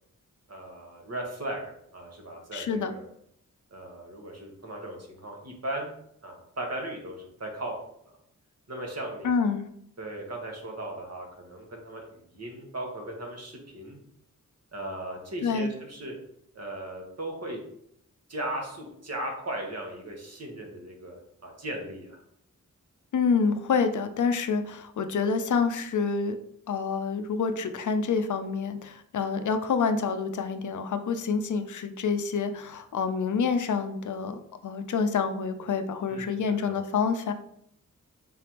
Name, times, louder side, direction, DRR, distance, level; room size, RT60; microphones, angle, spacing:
voice 1, 0.5-3.0 3.7-5.9 6.2-7.7 8.0-8.2 8.7-9.3 10.0-14.0 14.7-16.1 16.5-17.6 18.3-21.2 21.4-22.2 36.1-36.8, right 1 dB, 50° right, 1 dB, 1.1 m, -37 dB
voice 2, 2.5-2.9 9.2-9.7 15.4-15.7 23.1-26.4 26.7-37.3, left 5 dB, 65° left, 8 dB, 0.5 m, -27 dB
3.8 x 3.3 x 2.9 m, 0.72 s
cardioid pair, 55°, 32 cm